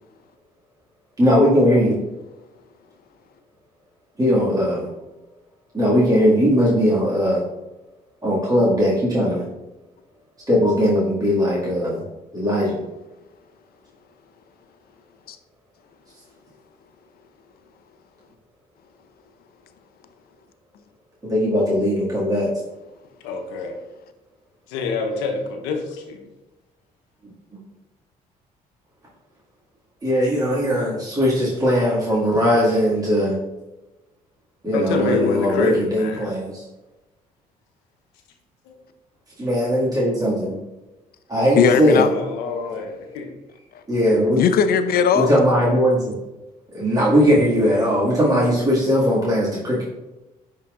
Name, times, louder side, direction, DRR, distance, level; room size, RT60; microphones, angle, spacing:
voice 1, 1.2-2.0 4.2-4.9 5.7-7.4 8.2-9.4 10.5-12.0 12.3-12.8 21.2-22.5 30.0-33.4 34.6-36.6 39.4-40.6 41.3-42.1 43.9-44.4 45.1-46.2 46.7-49.8, equal, 20° right, -7 dB, 2.0 m, -19 dB
voice 2, 23.2-23.7 24.7-26.2 34.7-36.3 38.7-38.8 41.9-43.3, left 4 dB, 75° left, 3 dB, 0.9 m, -26 dB
voice 3, 41.6-42.1 44.4-45.3, left 7 dB, 55° left, 10 dB, 0.6 m, -18 dB
11.0 x 3.8 x 2.5 m, 1.0 s
hypercardioid pair, 50°, 19 cm